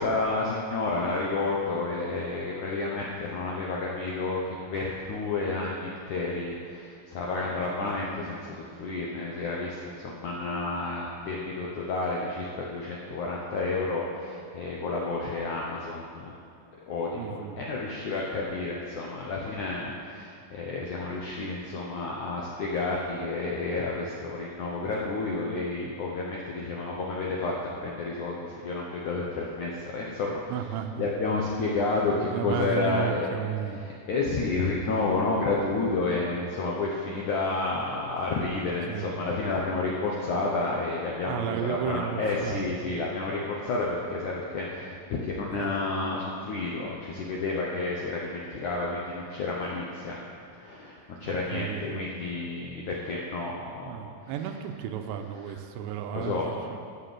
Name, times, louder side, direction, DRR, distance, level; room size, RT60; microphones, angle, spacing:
voice 1, 0.0-16.3 16.9-27.5 27.8-30.4 31.0-33.4 33.8-50.2 50.6-53.9 56.1-56.5, left 3 dB, 75° left, -3 dB, 1.8 m, -30 dB
voice 2, 17.1-17.7 30.5-31.0 32.1-33.8 38.9-39.2 41.3-43.4 45.5-45.7 51.2-52.0 53.8-56.8, right 10 dB, 85° right, 6 dB, 2.9 m, -34 dB
13.0 x 6.8 x 7.6 m, 2.5 s
omnidirectional pair, 5.1 m